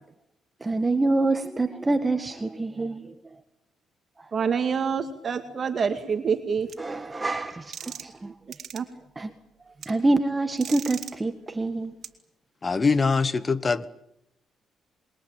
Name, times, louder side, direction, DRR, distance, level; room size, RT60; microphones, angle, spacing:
voice 1, 0.6-3.1 6.8-8.3 9.1-9.3 9.9-11.9, right 2 dB, 20° right, 1.7 m, -26 dB
voice 2, 4.3-6.7 8.7-8.8, right 6 dB, 45° right, 2.2 m, -26 dB
sound 1, 6.7-6.8 7.7-8.2 8.5-8.8 9.8-9.9 10.6-11.1 12.0-12.1, right 9 dB, 65° right, 3.0 m, -38 dB
voice 3, 12.6-13.9, left 4 dB, 30° left, 1.3 m, -23 dB
27.0 x 22.5 x 8.9 m
cardioid pair, 90°, 0 cm